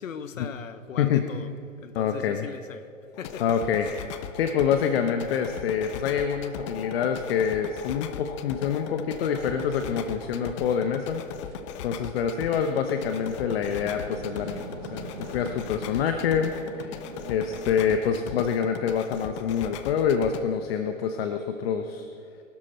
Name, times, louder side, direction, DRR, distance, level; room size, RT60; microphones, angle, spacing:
voice 1, 0.0-1.5 1.8-2.9 3.2-3.4, left 7 dB, 70° left, 12 dB, 1.2 m, -38 dB
voice 2, 1.9-2.5 3.4-3.9 4.4-11.2 11.8-15.1 15.3-17.0 17.3-22.1, left 7 dB, 45° left, 7 dB, 1.0 m, -26 dB
sound 1, 3.1-20.4, left 8 dB, 25° left, 0.5 m, -38 dB
sound 2, 9.1-17.7, right 7 dB, 55° right, 1.7 m, -44 dB
22.5 x 12.5 x 4.4 m, 2.5 s
hypercardioid pair, 130°, 40 cm